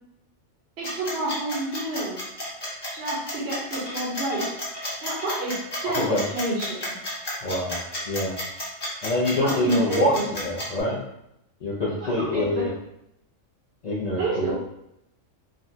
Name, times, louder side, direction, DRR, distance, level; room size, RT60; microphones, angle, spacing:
sound 1, 0.8-10.8, left 1 dB, 25° left, 0.8 m, -32 dB
voice 1, 0.8-2.2 2.9-4.6 5.0-5.5 5.8-6.8 9.4-10.3 11.8-12.7 14.2-14.5, right 1 dB, 60° right, -7 dB, 1.0 m, -29 dB
voice 2, 7.4-7.8 8.1-8.4 9.0-11.0 11.6-12.7 13.8-14.5, left 1 dB, 65° left, -6 dB, 0.4 m, -25 dB
3.6 x 2.1 x 2.6 m, 0.82 s
omnidirectional pair, 1.3 m